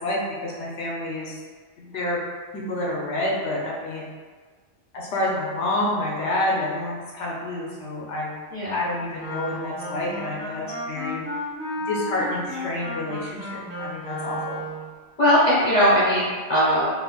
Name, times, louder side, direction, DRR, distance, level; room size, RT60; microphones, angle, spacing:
voice 1, 0.0-1.4 1.8-2.2 2.5-4.0 4.9-8.3 8.7-11.2 11.9-14.6, left 1 dB, 70° left, -4 dB, 0.9 m, -28 dB
Wind instrument woodwind instrument, 9.1-14.9, left 1 dB, 15° left, 1.2 m, -33 dB
voice 2, 15.2-16.9, equal, 40° left, -9 dB, 1.0 m, -19 dB
3.8 x 2.8 x 2.3 m, 1.5 s
omnidirectional pair, 1.2 m